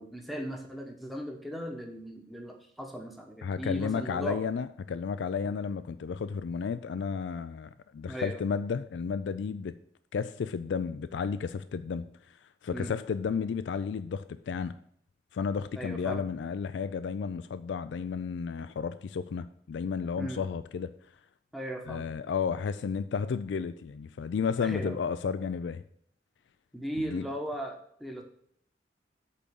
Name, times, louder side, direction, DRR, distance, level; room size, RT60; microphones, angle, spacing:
voice 1, 0.0-4.4 8.1-8.4 12.7-12.9 15.8-16.2 20.2-20.4 21.5-22.1 24.6-25.0 26.7-28.2, equal, ahead, 1 dB, 1.0 m, -37 dB
voice 2, 3.4-9.7 10.1-12.4 12.6-14.7 15.3-20.9 21.9-25.8 27.0-27.3, left 6 dB, 80° left, 13 dB, 0.3 m, -32 dB
8.3 x 3.8 x 6.9 m, 0.67 s
head